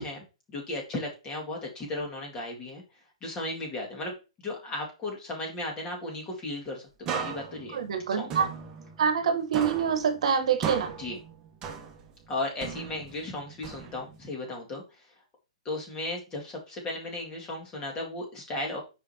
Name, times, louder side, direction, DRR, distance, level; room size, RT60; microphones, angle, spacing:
voice 1, 0.0-2.8 3.2-6.8 7.1-7.8 8.2-8.5 11.0-11.2 12.3-15.1 15.7-18.8, left 2 dB, 20° left, 2.0 m, -35 dB
sound 1, 7.1-9.3 9.5-12.2 12.6-14.3, right 7 dB, 25° right, 1.0 m, -37 dB
voice 2, 7.7-8.5 9.0-10.9, right 7 dB, 65° right, 1.1 m, -26 dB
6.8 x 5.1 x 2.8 m
hypercardioid pair, 140°, 4 cm